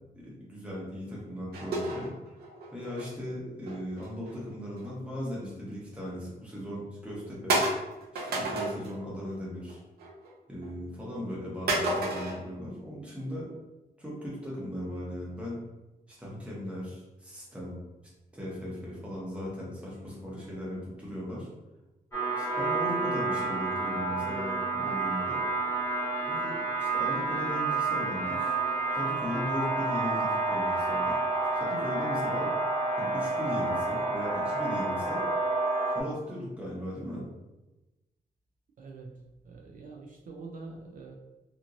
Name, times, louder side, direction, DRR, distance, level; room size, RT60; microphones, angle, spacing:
voice 1, 0.2-2.1 2.7-7.6 8.1-9.8 10.5-13.5 14.0-15.6 16.1-17.8 18.3-21.5 22.4-25.4 26.3-28.6 28.9-31.2 31.5-32.5 33.0-35.2 35.9-37.2, equal, 10° right, -6 dB, 1.0 m, -38 dB
sound 1, 1.5-3.1 3.7-5.0 5.3-5.6 6.1-6.2 6.7-6.8 7.5-9.0 9.3-9.7 10.0-10.7 11.7-12.4, right 2 dB, 85° right, 0.7 m, -31 dB
sound 2, 22.1-36.0, right 3 dB, 15° left, 0.9 m, -29 dB
voice 2, 38.8-39.2 39.5-41.2, right 3 dB, 60° right, 0 dB, 0.4 m, -45 dB
2.9 x 2.5 x 2.5 m, 1.0 s
wide cardioid pair, 140°, 16 cm